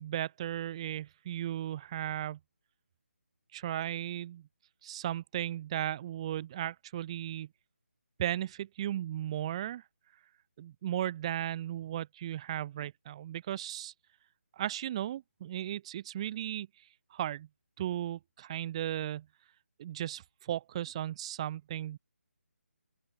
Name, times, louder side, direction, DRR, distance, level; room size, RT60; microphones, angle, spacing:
voice 1, 0.0-2.4 3.5-4.5 4.8-7.5 8.2-9.8 10.6-13.9 14.6-16.7 17.1-17.5 17.8-19.3 19.8-22.0, right 12 dB, 25° right, 5.1 m, -36 dB
open air
figure-of-eight pair, 150°, 7 cm